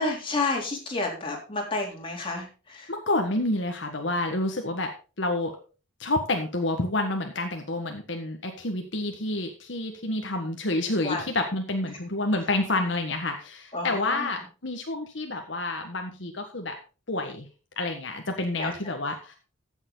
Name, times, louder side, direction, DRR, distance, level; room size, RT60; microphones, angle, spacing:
voice 1, 0.0-2.9 11.0-11.3 13.7-14.3 18.6-18.7, left 3 dB, 30° left, -1 dB, 3.7 m, -30 dB
voice 2, 2.9-4.9 5.2-5.5 6.0-16.7 17.1-17.5 17.8-19.3, left 2 dB, 70° left, 4 dB, 1.6 m, -29 dB
15.0 x 7.2 x 4.0 m, 0.34 s
head